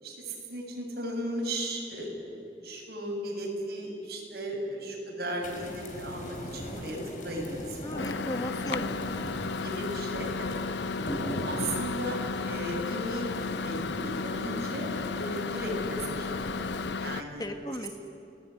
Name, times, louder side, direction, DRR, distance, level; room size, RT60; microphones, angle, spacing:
voice 1, 0.0-7.0 7.2-8.0 9.6-10.6 11.5-13.3 13.6-17.4, right 1 dB, 60° right, -1 dB, 7.2 m, -36 dB
sound 1, 5.4-16.9, equal, 45° left, 4.2 m, -40 dB
voice 2, 7.8-9.3 10.8-11.2 17.4-18.0, left 1 dB, 20° left, 5 dB, 1.7 m, -37 dB
Microwave oven, 8.0-17.2, left 4 dB, 80° left, 0.6 m, -34 dB
29.5 x 18.5 x 9.8 m, 2.6 s
head